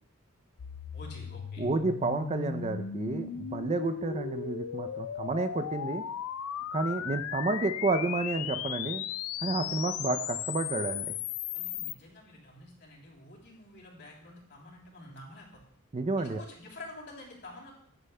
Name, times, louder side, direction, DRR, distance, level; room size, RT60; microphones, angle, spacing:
sound 1, 0.6-11.9, left 9 dB, 75° left, 0.4 m, -37 dB
voice 1, 0.9-1.7 11.5-15.6 16.2-17.7, left 2 dB, 50° left, -2 dB, 3.1 m, -48 dB
voice 2, 1.6-6.0 6.7-9.0 9.4-11.2 15.9-16.4, right 3 dB, 30° right, 9 dB, 0.4 m, -30 dB
14.5 x 9.9 x 2.2 m, 0.68 s
head